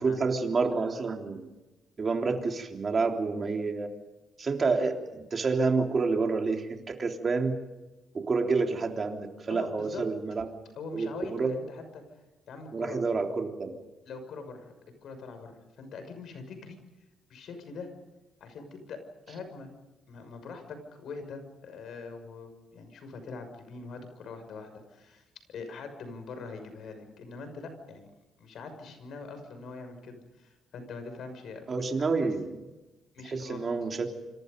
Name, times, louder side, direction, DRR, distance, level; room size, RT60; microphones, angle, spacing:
voice 1, 0.0-1.5 2.0-3.9 4.4-7.6 8.1-10.5 10.9-11.5 12.7-13.8 31.7-32.5 33.3-34.1, right 4 dB, 35° right, 3 dB, 3.5 m, -28 dB
voice 2, 9.5-10.0 10.8-13.0 14.1-14.6 15.0-16.8 17.3-17.9 18.4-19.0 19.3-19.7 20.1-28.1 28.4-32.3 33.1-33.7, left 4 dB, 70° left, 8 dB, 6.2 m, -43 dB
27.5 x 26.5 x 5.4 m, 1.1 s
cardioid pair, 125°, 0 cm